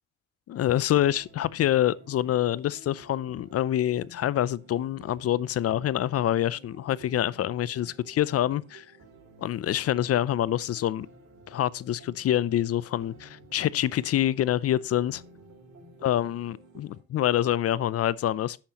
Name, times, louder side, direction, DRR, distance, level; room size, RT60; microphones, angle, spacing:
voice 1, 0.5-8.8 9.4-11.1 11.5-15.2 16.0-18.6, left 12 dB, 55° left, 0.5 m, -26 dB
sound 1, 1.0-17.0, right 1 dB, 55° right, 4.2 m, -52 dB
11.5 x 8.7 x 2.9 m
cardioid pair, 90°, 30 cm